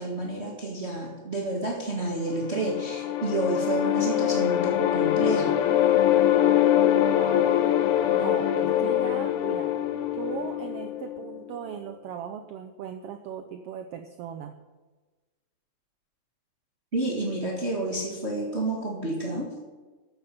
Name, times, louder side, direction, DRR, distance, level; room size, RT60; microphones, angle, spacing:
voice 1, 0.0-5.6 16.9-19.5, right 2 dB, 30° right, -1 dB, 1.5 m, -29 dB
sound 1, 2.2-11.4, left 11 dB, 75° left, 1.3 m, -23 dB
voice 2, 6.9-7.5 8.1-9.8 10.1-14.6, right 8 dB, 85° right, 8 dB, 1.3 m, -38 dB
13.0 x 8.4 x 6.7 m, 1.3 s
omnidirectional pair, 3.5 m